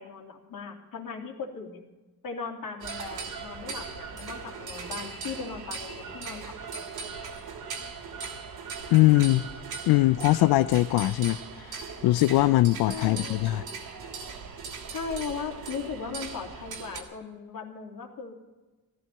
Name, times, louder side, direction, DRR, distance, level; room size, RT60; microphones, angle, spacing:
voice 1, 0.0-1.8 2.2-6.5 12.9-13.5 14.9-18.3, left 5 dB, 60° left, 1 dB, 3.1 m, -38 dB
sound 1, 2.8-17.0, right 5 dB, 75° right, 3.0 m, -39 dB
voice 2, 8.9-9.4 9.9-13.6, left 17 dB, 80° left, 15 dB, 0.5 m, -22 dB
14.5 x 14.0 x 5.6 m, 1.2 s
cardioid pair, 95°, 37 cm